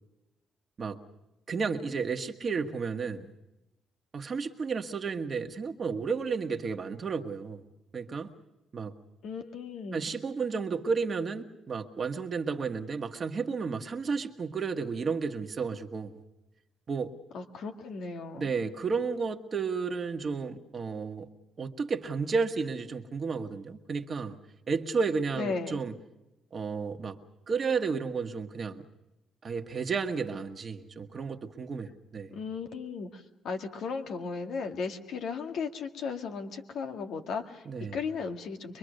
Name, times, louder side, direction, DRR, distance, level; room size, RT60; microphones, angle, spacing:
voice 1, 1.5-3.3 4.1-7.6 7.9-8.3 8.7-8.9 9.9-16.1 16.9-17.1 18.3-21.3 21.6-24.4 24.7-25.9 26.5-27.2 27.5-28.8 29.4-32.3 37.6-38.0, right 5 dB, 40° right, 5 dB, 1.5 m, -32 dB
voice 2, 9.2-10.1 17.3-18.5 25.4-25.8 32.3-37.6 37.9-38.8, left 5 dB, 75° left, 4 dB, 2.1 m, -36 dB
24.5 x 23.0 x 6.6 m, 0.94 s
cardioid pair, 90°, 0 cm